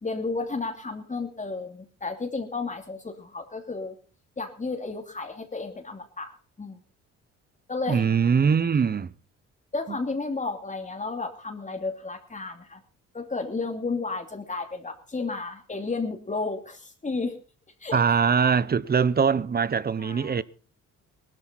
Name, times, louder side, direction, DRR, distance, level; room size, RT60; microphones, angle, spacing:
voice 1, 0.0-3.9 4.4-6.8 7.7-8.0 9.7-12.8 13.1-17.3 17.8-18.0 20.0-20.4, left 3 dB, 25° left, 2.8 m, -32 dB
voice 2, 7.9-9.1 9.9-10.0 17.9-20.4, right 6 dB, 30° right, 0.8 m, -22 dB
19.0 x 13.0 x 4.0 m
cardioid pair, 90°, 30 cm